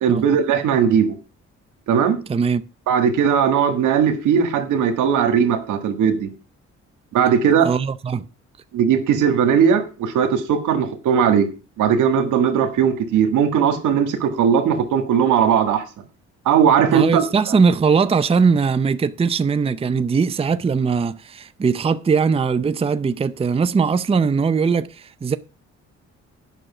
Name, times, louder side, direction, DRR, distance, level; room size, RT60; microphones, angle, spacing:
voice 1, 0.0-1.1 1.9-2.2 2.9-6.3 7.1-7.7 8.7-11.5 11.8-15.8 16.4-17.2, right 7 dB, 85° right, 1.6 m, -18 dB
voice 2, 2.3-2.6 7.6-8.3 16.9-25.4, right 5 dB, 20° right, 0.5 m, -20 dB
9.2 x 6.3 x 6.1 m
cardioid pair, 90°, 30 cm